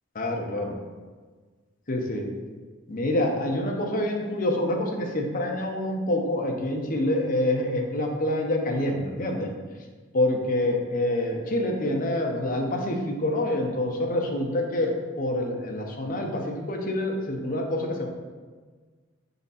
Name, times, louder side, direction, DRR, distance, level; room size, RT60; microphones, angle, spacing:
voice 1, 0.1-0.7 1.9-2.3 2.9-9.5 10.1-18.1, left 1 dB, 45° left, 1 dB, 0.9 m, -26 dB
7.1 x 4.0 x 4.1 m, 1.4 s
head